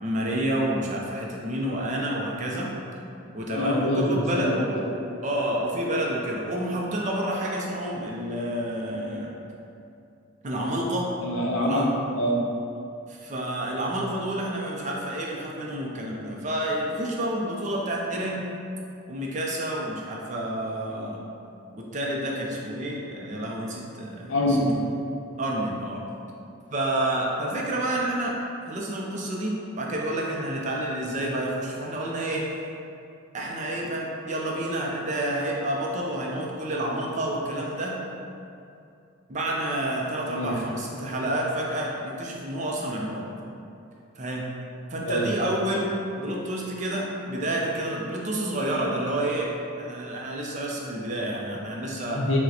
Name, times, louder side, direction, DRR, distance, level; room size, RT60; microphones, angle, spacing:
voice 1, 0.0-2.7 3.3-4.9 5.2-9.3 10.4-11.1 11.6-11.9 13.1-18.4 19.1-21.2 21.7-24.6 25.4-26.0 26.7-28.3 28.7-32.5 33.3-38.0 39.3-43.2 44.2-44.5 44.9-49.5 49.8-52.2, right 1 dB, 35° right, -2 dB, 0.4 m, -29 dB
voice 2, 3.5-4.6 11.2-12.4 24.3-24.7 40.2-40.6 45.0-45.3 52.1-52.4, left 1 dB, 65° left, -3 dB, 0.6 m, -25 dB
6.1 x 2.1 x 2.8 m, 2.6 s
head